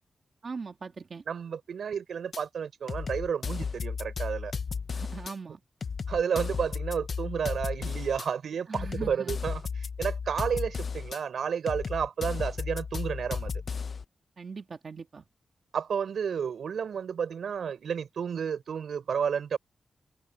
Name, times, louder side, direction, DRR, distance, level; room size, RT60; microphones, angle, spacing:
voice 1, 0.4-1.2 4.9-5.6 8.7-9.4 14.4-15.2, right 4 dB, 40° right, 2.1 m, -40 dB
voice 2, 1.3-4.5 6.1-13.5 15.7-19.6, right 7 dB, 75° right, 4.9 m, -31 dB
sound 1, 2.3-2.4 2.9-5.3 5.8-8.3 8.7-11.2 11.7-14.0, left 5 dB, 45° left, 0.6 m, -34 dB
wide cardioid pair, 165°, 0 cm